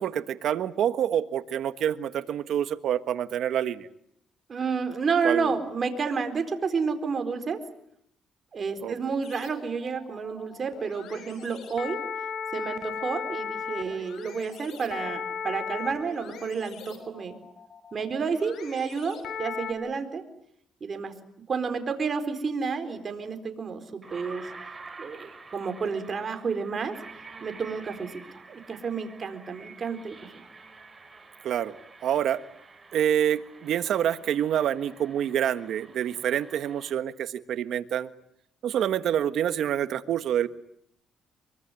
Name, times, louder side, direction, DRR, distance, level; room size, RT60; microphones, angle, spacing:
voice 1, 0.0-3.9 5.2-5.5 8.8-8.9 31.4-31.8 32.0-32.4 32.9-38.1 38.6-40.5, right 10 dB, 75° right, 12 dB, 1.4 m, -27 dB
voice 2, 4.5-7.6 8.5-12.0 12.5-17.4 17.9-20.2 20.8-21.2 21.5-24.7 25.0-30.4, right 5 dB, 45° right, 7 dB, 4.2 m, -30 dB
sound 1, 9.2-19.7, left 6 dB, 75° left, 5.9 m, -37 dB
sound 2, 23.4-23.5 24.0-36.9, right 4 dB, 25° right, 5.3 m, -48 dB
24.5 x 24.0 x 9.8 m, 0.71 s
cardioid pair, 90°, 0 cm